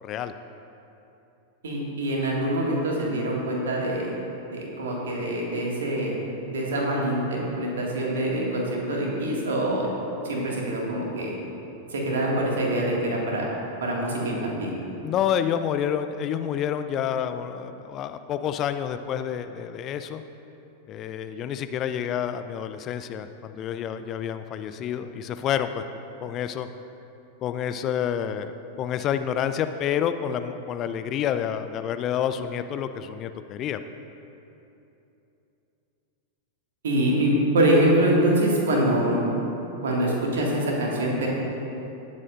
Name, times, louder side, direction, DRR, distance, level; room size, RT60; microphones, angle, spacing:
voice 1, 0.0-0.3 15.0-20.2 20.9-25.8 26.2-26.7 27.4-28.5 28.8-33.8, left 9 dB, 35° left, 10 dB, 0.4 m, -28 dB
voice 2, 1.6-4.1 4.5-6.1 6.5-9.9 10.2-11.3 11.9-13.5 13.8-14.7 36.8-39.2 39.8-41.3, right 1 dB, 65° right, -2 dB, 1.9 m, -24 dB
17.5 x 7.5 x 2.5 m, 2.9 s
figure-of-eight pair, 90°, 0 cm